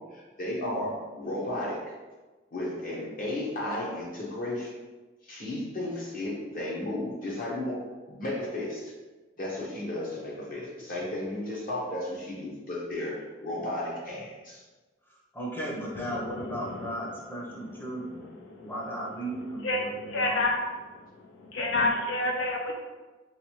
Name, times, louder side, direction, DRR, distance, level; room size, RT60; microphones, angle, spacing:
voice 1, 0.0-1.8 2.5-4.7 5.2-7.8 8.1-8.9 9.4-14.6, left 1 dB, 45° left, -4 dB, 1.0 m, -34 dB
voice 2, 0.6-0.9 15.1-18.3 18.6-20.5, right 1 dB, 10° left, -4 dB, 0.7 m, -36 dB
voice 3, 16.0-16.9 17.7-18.7 19.6-20.6 20.9-22.7, left 2 dB, 75° left, -1 dB, 0.4 m, -30 dB
3.2 x 3.2 x 3.0 m, 1.2 s
head